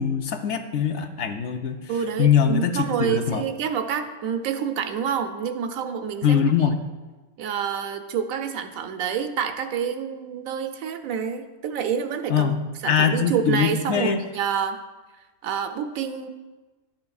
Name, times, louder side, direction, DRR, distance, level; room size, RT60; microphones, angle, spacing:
voice 1, 0.0-1.9 2.2-3.4 6.2-6.8 12.3-12.6 12.9-14.2, left 7 dB, 65° left, 7 dB, 0.8 m, -22 dB
voice 2, 1.9-6.4 7.4-12.5 12.8-14.8 15.4-16.3, right 7 dB, 85° right, 7 dB, 1.1 m, -28 dB
12.0 x 7.7 x 2.3 m, 1.2 s
omnidirectional pair, 1.4 m